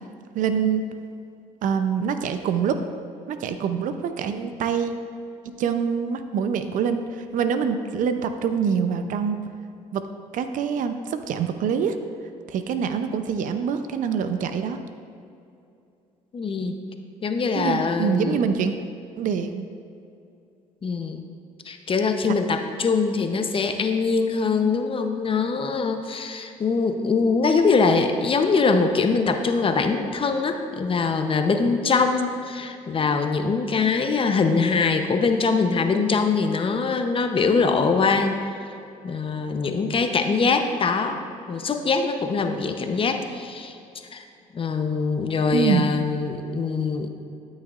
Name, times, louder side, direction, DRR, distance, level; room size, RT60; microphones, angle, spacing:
voice 1, 0.3-0.8 1.6-2.8 3.3-4.9 5.6-9.4 9.9-10.0 10.3-12.0 12.5-14.8 17.5-18.7 19.2-19.7 22.3-22.4 45.5-45.8, right 7 dB, 65° right, 9 dB, 0.6 m, -25 dB
voice 2, 16.3-16.8 17.2-18.4 20.8-21.2 21.7-38.4 39.0-41.2 41.5-43.8 44.1-44.2 44.5-47.1, left 4 dB, 40° left, 6 dB, 0.8 m, -23 dB
12.5 x 6.4 x 2.5 m, 2.6 s
supercardioid pair, 70°, 15 cm